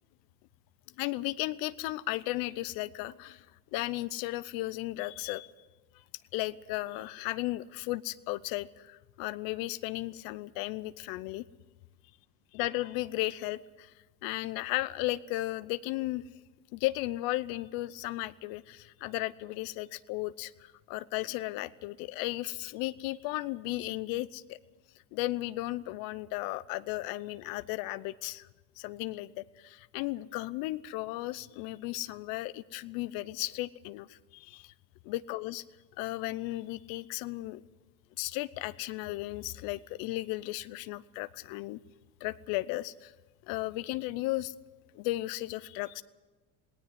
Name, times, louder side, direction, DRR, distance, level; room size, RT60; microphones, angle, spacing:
voice 1, 1.0-3.5 3.7-5.5 6.3-11.4 12.5-13.9 14.2-16.2 16.7-24.6 25.1-28.5 28.8-34.7 35.0-35.6 36.0-37.6 38.2-41.8 42.2-43.1 43.5-44.5 44.9-46.0, left 18 dB, 75° left, 15 dB, 0.7 m, -35 dB
18.5 x 17.5 x 9.2 m, 1.2 s
supercardioid pair, 120°, 35 cm